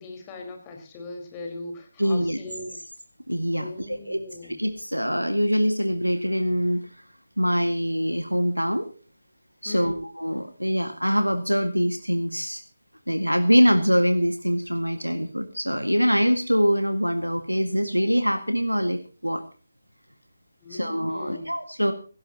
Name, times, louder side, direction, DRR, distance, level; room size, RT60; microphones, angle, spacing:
voice 1, 0.0-2.6 3.6-4.6 9.6-10.0 20.6-21.5, left 2 dB, 15° left, 3 dB, 4.6 m, -39 dB
voice 2, 2.0-2.4 3.3-4.2 4.6-6.9 7.4-8.9 9.6-12.6 13.1-19.4 20.7-21.9, equal, 90° right, 8 dB, 1.8 m, -24 dB
18.0 x 17.5 x 2.9 m, 0.37 s
figure-of-eight pair, 155°, 0 cm